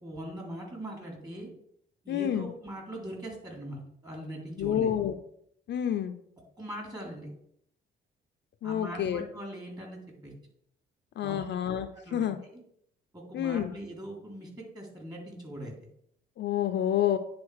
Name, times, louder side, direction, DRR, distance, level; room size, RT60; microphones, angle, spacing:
voice 1, 0.0-1.5 2.0-4.9 6.6-7.3 8.6-10.3 11.2-11.7 12.0-12.6 13.1-15.7, right 1 dB, 20° right, -1 dB, 3.3 m, -41 dB
voice 2, 2.1-2.5 4.6-5.1 5.7-6.1 8.6-9.2 11.2-12.4 13.3-13.7 16.4-17.2, left 10 dB, 65° left, 8 dB, 0.7 m, -28 dB
9.5 x 3.9 x 4.9 m, 0.70 s
cardioid pair, 90°, 20 cm